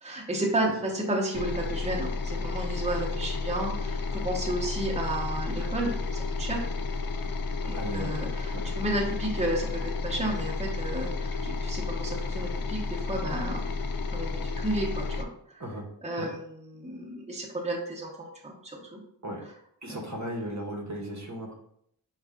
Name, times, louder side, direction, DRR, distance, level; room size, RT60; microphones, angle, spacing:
voice 1, 0.0-6.6 7.6-13.6 14.1-15.3 16.0-19.0 19.9-20.1, right 1 dB, 15° right, -2 dB, 0.9 m, -32 dB
sound 1, 1.3-15.2, left 3 dB, 50° left, 0.5 m, -32 dB
voice 2, 7.7-8.2 8.5-8.6 15.6-15.9 16.2-16.3 19.2-19.4 19.8-21.5, equal, 40° right, 0 dB, 1.0 m, -36 dB
5.3 x 2.4 x 3.6 m, 0.70 s
wide cardioid pair, 65°, 45 cm